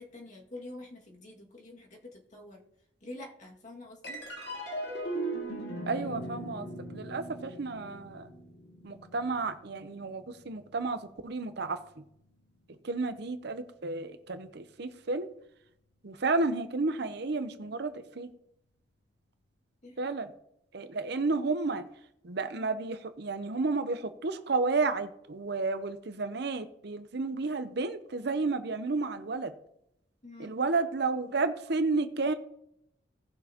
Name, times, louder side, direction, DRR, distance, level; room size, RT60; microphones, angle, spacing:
voice 1, 0.0-2.6 3.0-4.2 19.8-20.1 30.2-30.6, left 2 dB, 45° left, -1 dB, 2.1 m, -47 dB
sound 1, 4.0-10.7, right 1 dB, 65° left, 2.2 m, -39 dB
voice 2, 5.9-6.7 6.9-8.3 8.8-12.0 12.8-15.3 16.0-18.3 20.0-20.3 20.7-21.9 22.2-29.5 30.4-32.3, right 3 dB, 65° right, 10 dB, 0.8 m, -32 dB
17.5 x 6.4 x 2.9 m, 0.77 s
head